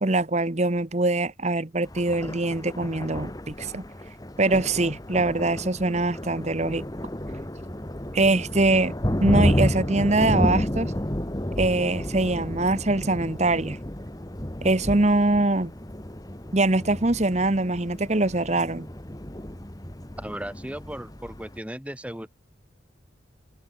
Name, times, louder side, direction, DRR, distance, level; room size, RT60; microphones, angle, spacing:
voice 1, 0.0-3.8 4.4-6.8 8.1-8.9 9.2-10.9 11.6-13.8 14.6-15.7 16.5-18.9, right 2 dB, 35° right, 1.1 m, -23 dB
Thunder, 1.9-21.6, equal, 20° left, 1.6 m, -31 dB
voice 2, 20.2-22.3, equal, 5° right, 2.2 m, -36 dB
head